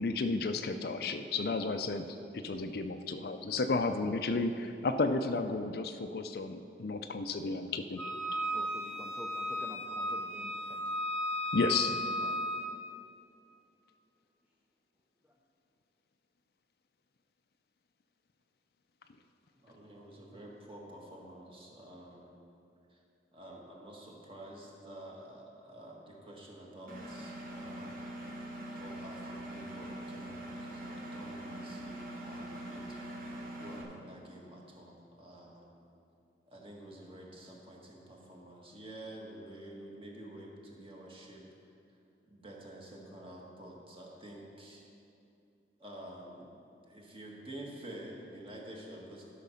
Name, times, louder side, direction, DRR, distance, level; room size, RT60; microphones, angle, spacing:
voice 1, 0.0-2.1 2.3-8.0 11.5-12.0, left 3 dB, 60° left, 8 dB, 0.5 m, -32 dB
Wind instrument woodwind instrument, 8.0-12.7, equal, 5° left, 1.4 m, -35 dB
voice 2, 8.5-11.1 12.2-12.8, equal, 10° right, -1 dB, 0.6 m, -50 dB
voice 3, 19.6-22.4 22.9-23.0 23.3-28.0 28.4-28.5 28.8-33.0 33.6-35.7 36.5-41.4 42.3-44.8 45.8-49.2, right 1 dB, 30° right, -2 dB, 1.6 m, -49 dB
Engine, 26.9-33.8, right 1 dB, 50° right, 1.4 m, -43 dB
12.0 x 5.9 x 5.7 m, 2.6 s
head